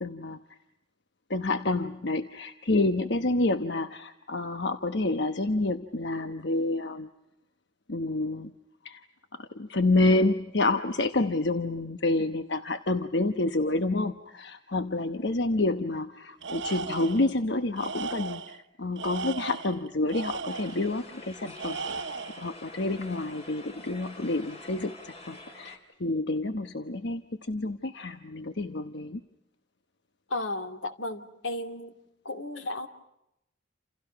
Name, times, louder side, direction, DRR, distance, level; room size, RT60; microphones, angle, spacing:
voice 1, 0.0-0.4 1.3-7.1 7.9-8.5 8.8-9.0 9.4-21.8 22.4-29.2, left 2 dB, 65° left, 8 dB, 1.1 m, -28 dB
Tools, 16.4-17.3 17.8-18.6 19.0-20.9 21.6-22.5, right 4 dB, 70° right, 1.2 m, -36 dB
sound 1, 20.5-25.8, left 2 dB, 35° left, 4.0 m, -47 dB
voice 2, 30.3-31.9 32.2-32.9, left 2 dB, 85° left, 7 dB, 2.7 m, -34 dB
29.5 x 29.0 x 5.9 m, 0.85 s
head